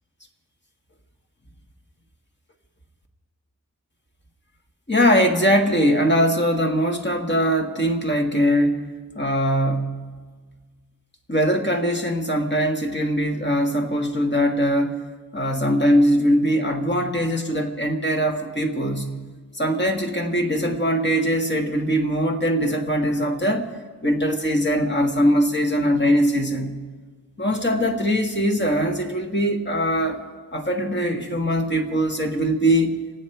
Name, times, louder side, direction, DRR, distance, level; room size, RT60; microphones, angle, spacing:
voice 1, 4.9-8.9 9.2-10.1 11.3-15.0 15.3-19.2 19.5-23.7 24.0-26.8 27.4-30.2 30.5-33.0, equal, 30° left, 2 dB, 1.8 m, -21 dB
26.0 x 9.6 x 4.6 m, 1.5 s
wide cardioid pair, 70°, 36 cm